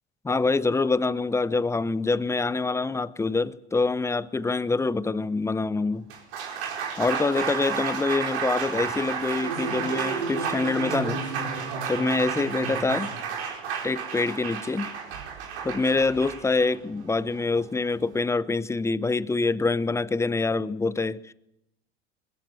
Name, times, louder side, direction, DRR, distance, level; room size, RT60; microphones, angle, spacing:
voice 1, 0.2-6.1 7.0-11.2 11.9-13.1 13.8-14.9 15.6-21.3, left 3 dB, 10° left, 0.7 m, -25 dB
Applause, 5.9-18.2, right 6 dB, 85° right, 4.8 m, -31 dB
21.0 x 17.0 x 7.7 m
supercardioid pair, 100°, 32 cm